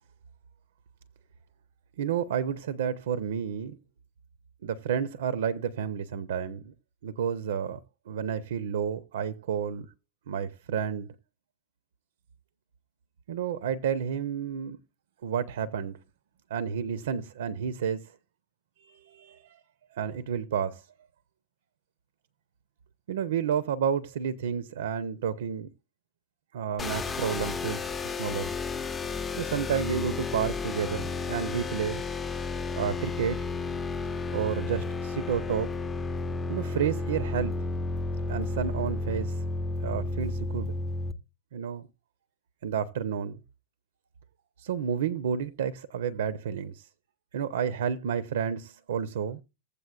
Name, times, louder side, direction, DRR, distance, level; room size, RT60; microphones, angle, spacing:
voice 1, 2.0-3.8 4.6-6.7 7.0-7.8 8.1-9.9 10.3-11.1 13.3-14.8 15.2-16.0 16.5-18.0 18.8-19.6 19.9-20.8 23.1-25.7 26.5-28.5 29.4-32.0 32.7-33.4 34.3-35.7 36.5-37.5 38.3-39.4 39.8-40.7 41.5-41.9 42.6-43.4 44.6-46.9 47.3-49.4, right 8 dB, 60° right, 0.5 m, -31 dB
sound 1, 26.8-41.1, left 3 dB, 20° left, 0.6 m, -32 dB
15.5 x 8.3 x 2.3 m
figure-of-eight pair, 90°, 0 cm